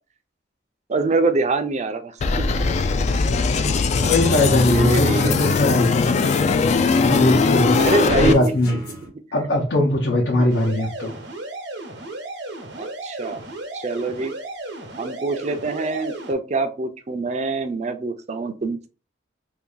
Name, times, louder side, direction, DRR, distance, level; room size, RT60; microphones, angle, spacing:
voice 1, 0.9-2.2 4.6-5.4 7.8-8.5 9.0-9.1 10.4-10.5 12.8-13.4 13.7-14.3 15.0-18.9, right 3 dB, 40° right, 9 dB, 0.5 m, -24 dB
sound 1, 2.2-8.3, left 4 dB, 40° left, 0.3 m, -20 dB
sound 2, 3.9-9.1, left 1 dB, 60° left, 1.1 m, -35 dB
voice 2, 4.0-6.1 7.0-7.8 8.2-8.8 9.3-11.1, left 1 dB, 85° left, -4 dB, 0.9 m, -20 dB
sound 3, 10.5-16.3, right 2 dB, 85° right, 0.9 m, -34 dB
2.7 x 2.6 x 3.8 m, 0.34 s
head